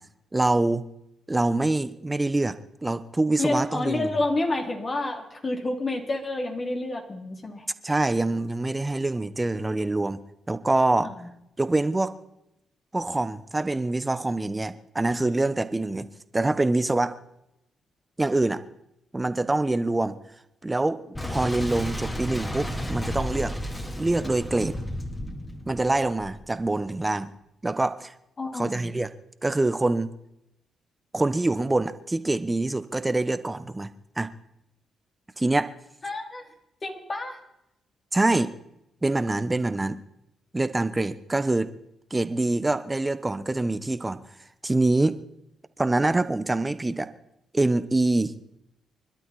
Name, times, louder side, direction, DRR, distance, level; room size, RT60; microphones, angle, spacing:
voice 1, 0.3-0.9 1.3-2.6 2.8-4.1 7.8-10.2 10.5-11.1 11.6-12.1 12.9-16.1 16.3-17.1 18.2-18.6 19.1-20.2 20.6-23.5 24.0-24.8 25.7-27.3 27.6-28.1 28.5-29.1 29.4-30.1 31.1-34.3 35.4-35.7 38.1-38.5 39.0-40.0 40.5-41.7 42.1-44.2 44.6-45.2 45.8-47.1 47.5-48.4, right 2 dB, 20° right, 13 dB, 1.2 m, -25 dB
voice 2, 3.4-7.6 11.0-11.3 28.4-28.9 36.0-36.5 36.8-37.4, left 2 dB, 40° left, 1 dB, 3.4 m, -29 dB
Boom, 21.1-26.7, left 1 dB, 20° left, 3.5 m, -33 dB
26.0 x 12.0 x 4.3 m, 0.84 s
hypercardioid pair, 40°, 0 cm